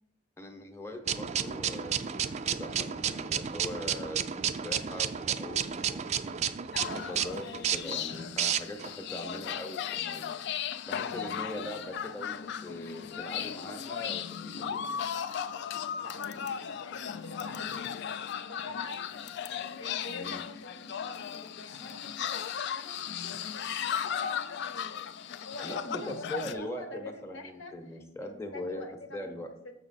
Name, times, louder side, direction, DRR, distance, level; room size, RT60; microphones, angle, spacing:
voice 1, 0.4-4.2 4.6-6.3 6.9-10.3 10.9-12.3 12.6-14.8 20.2-20.4 25.6-28.8 29.1-29.5, left 1 dB, 15° left, 4 dB, 0.8 m, -41 dB
sound 1, 1.1-8.9, right 8 dB, 35° right, 0.3 m, -32 dB
sound 2, 6.7-26.5, left 8 dB, 60° left, 0.3 m, -36 dB
voice 2, 11.0-12.5 16.0-17.8 18.5-19.4 19.8-29.7, left 2 dB, 75° left, 7 dB, 0.9 m, -46 dB
7.0 x 6.1 x 4.1 m, 0.81 s
head